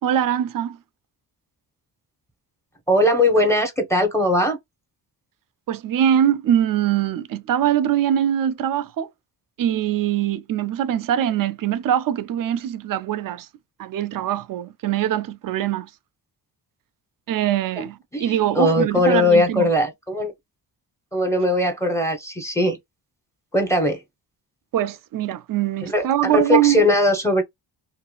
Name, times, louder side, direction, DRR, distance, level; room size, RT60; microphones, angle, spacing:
voice 1, 0.0-0.8 5.7-9.1 9.6-13.5 13.8-15.9 17.3-19.7 24.7-26.9, right 10 dB, 50° right, 0.4 m, -22 dB
voice 2, 2.9-4.6 18.1-20.3 21.1-22.8 23.5-24.0 25.9-27.4, left 1 dB, 5° left, 0.8 m, -20 dB
3.0 x 2.1 x 2.3 m
cardioid pair, 70°, 44 cm